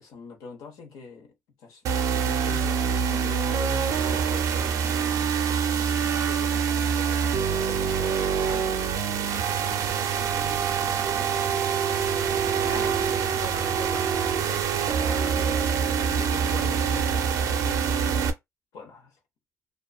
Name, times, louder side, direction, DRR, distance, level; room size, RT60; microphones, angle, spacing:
voice 1, 0.0-5.2 5.7-8.8 9.5-11.8 12.2-12.6 13.0-13.4 14.3-15.2 16.0-18.2 18.7-19.2, left 5 dB, 90° left, 0.9 m, -44 dB
sound 1, 1.8-18.3, right 7 dB, 65° right, 0.5 m, -25 dB
voice 2, 12.7-14.1 15.0-15.6, left 3 dB, 45° left, 0.6 m, -40 dB
2.4 x 2.2 x 2.4 m
cardioid pair, 180°, 6 cm